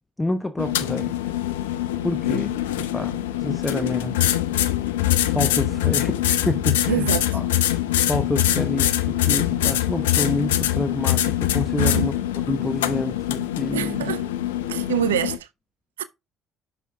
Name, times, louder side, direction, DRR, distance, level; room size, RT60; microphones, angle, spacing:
voice 1, 0.2-1.1 2.0-4.2 5.2-6.1 6.4-7.5 8.1-12.1 12.5-14.1, left 2 dB, 15° left, 0.9 m, -28 dB
sound 1, 0.6-15.4, left 12 dB, 85° left, 0.6 m, -23 dB
voice 2, 6.9-7.3 11.8-12.1 13.7-14.3 14.7-15.5 16.0-16.1, right 11 dB, 90° right, 0.3 m, -25 dB
6.5 x 5.3 x 3.5 m
hypercardioid pair, 55°, 0 cm